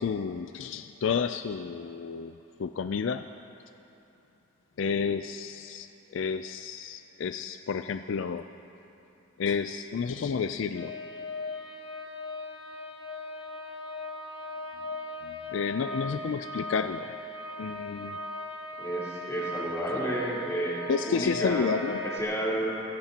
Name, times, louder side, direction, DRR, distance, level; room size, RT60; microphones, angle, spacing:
voice 1, 0.0-3.2 4.8-8.4 9.4-11.0 15.2-17.1 17.6-18.2 20.9-22.0, left 5 dB, 65° left, 9 dB, 0.4 m, -31 dB
sound 1, 10.7-22.2, left 2 dB, 90° left, 1.5 m, -38 dB
voice 2, 18.8-21.8 22.0-22.8, right 1 dB, 15° left, -8 dB, 3.9 m, -31 dB
24.5 x 16.5 x 2.9 m, 2.8 s
head